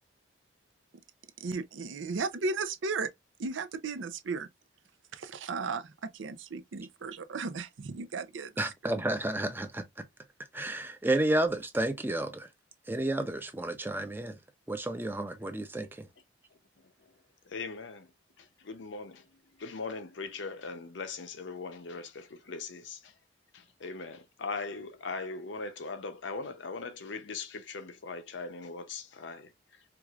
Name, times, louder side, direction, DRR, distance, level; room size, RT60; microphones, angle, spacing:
voice 1, 1.4-3.1 3.4-4.5 5.1-8.6, right 4 dB, 90° right, 0.5 m, -35 dB
voice 2, 8.6-9.8 10.5-12.5 12.9-14.4 14.7-16.1, right 1 dB, 10° right, 0.5 m, -31 dB
voice 3, 17.5-18.1 18.4-19.3 19.6-23.1 23.5-29.5, left 4 dB, 75° left, 0.7 m, -40 dB
4.6 x 2.5 x 2.3 m
head